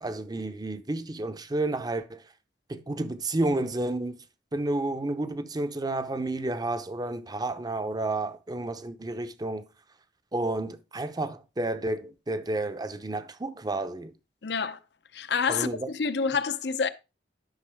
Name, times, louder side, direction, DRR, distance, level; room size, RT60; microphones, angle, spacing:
voice 1, 0.0-2.2 2.7-4.2 4.5-9.7 10.3-14.1 15.5-15.9, right 2 dB, 25° right, 0.7 m, -31 dB
voice 2, 14.4-14.8 15.1-16.9, left 5 dB, 70° left, 0.7 m, -28 dB
11.5 x 5.9 x 3.5 m
head